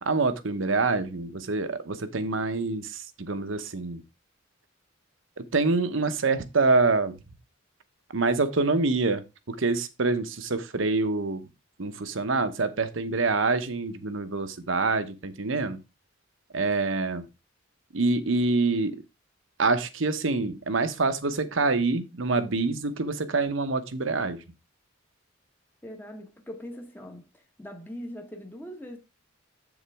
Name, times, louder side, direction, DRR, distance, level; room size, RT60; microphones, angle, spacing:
voice 1, 0.0-3.0 3.3-4.0 5.4-7.1 8.1-11.4 11.8-15.8 16.5-17.3 17.9-19.0 19.6-24.4, right 3 dB, 70° right, 1.0 m, -26 dB
voice 2, 25.8-29.0, equal, 10° left, 1.0 m, -41 dB
8.0 x 7.2 x 3.5 m
head